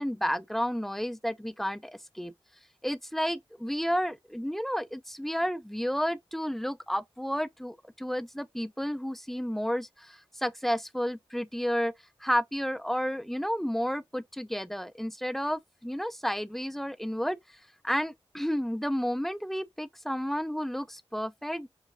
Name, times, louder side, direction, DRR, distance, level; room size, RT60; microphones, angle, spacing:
voice 1, 0.0-2.3 2.8-11.9 12.2-21.7, equal, ahead, 0.4 m, -31 dB
4.6 x 2.8 x 2.5 m
cardioid pair, 55°, 10 cm